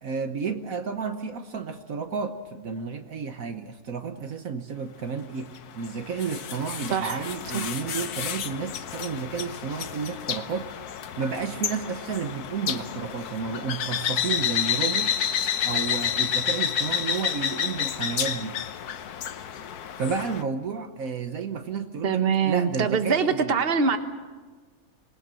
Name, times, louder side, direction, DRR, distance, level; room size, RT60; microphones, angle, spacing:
voice 1, 0.0-10.7 11.2-15.2 15.6-18.6 20.0-23.5, right 5 dB, 65° right, 7 dB, 1.5 m, -31 dB
sound 1, 5.6-20.4, left 8 dB, 75° left, 1.4 m, -30 dB
voice 2, 6.9-7.2 7.5-7.7 22.0-24.0, right 6 dB, 40° right, 8 dB, 1.4 m, -24 dB
26.5 x 20.0 x 7.6 m, 1.4 s
omnidirectional pair, 1.7 m